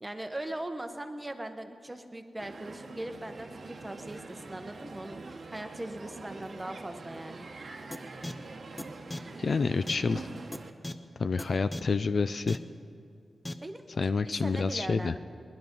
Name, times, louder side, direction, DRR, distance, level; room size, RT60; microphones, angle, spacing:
voice 1, 0.0-7.5 13.6-13.8 14.4-15.2, right 1 dB, 15° right, 7 dB, 0.9 m, -40 dB
Crowd, 2.4-10.7, right 3 dB, 50° right, 1.0 m, -44 dB
sound 1, 7.9-8.0 8.2-8.3 8.8-8.9 9.1-9.2 9.9-10.0 10.5-10.6 10.8-10.9 11.4-11.5 11.7-11.8 12.5-12.6 13.4-13.5, left 1 dB, 15° left, 0.7 m, -35 dB
voice 2, 9.4-10.3 11.2-12.6 14.0-15.1, left 4 dB, 50° left, 12 dB, 0.3 m, -28 dB
20.0 x 11.5 x 5.3 m, 2.4 s
wide cardioid pair, 125°, 0 cm